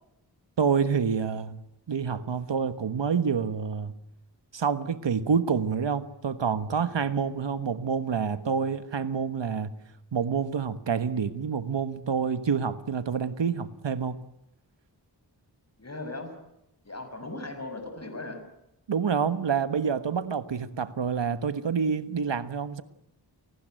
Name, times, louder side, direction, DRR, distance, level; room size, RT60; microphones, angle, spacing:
voice 1, 0.6-1.6 1.9-3.9 4.5-9.8 10.1-14.2 18.9-22.8, right 6 dB, 85° right, 11 dB, 1.4 m, -27 dB
voice 2, 15.8-16.4 16.8-18.4, left 2 dB, 35° left, 8 dB, 6.0 m, -38 dB
29.5 x 19.0 x 9.1 m, 0.88 s
wide cardioid pair, 65°, 42 cm